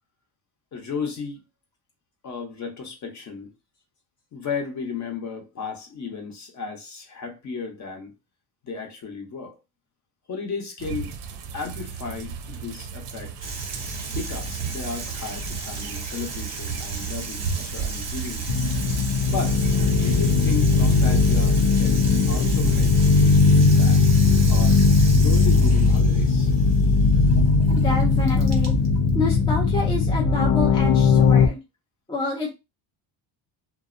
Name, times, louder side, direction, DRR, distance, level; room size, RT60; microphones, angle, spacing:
voice 1, 0.7-1.4 2.2-3.5 4.3-8.1 8.6-9.6 10.3-11.1 11.5-13.5 14.1-18.5 19.3-19.6 19.9-24.0 24.5-24.8 25.1-26.5, left 5 dB, 35° left, 0.7 m, -34 dB
sound 1, 10.8-20.3, right 6 dB, 60° right, 0.5 m, -34 dB
Water tap faucet / Sink (filling or washing), 13.4-30.9, right 3 dB, 30° right, 0.8 m, -37 dB
sound 2, 18.5-31.5, left 4 dB, 85° left, 0.6 m, -18 dB
voice 2, 27.8-28.7 29.1-31.6 32.1-32.5, left 2 dB, 10° left, 0.3 m, -28 dB
2.5 x 2.0 x 2.4 m
cardioid pair, 130°, 50 cm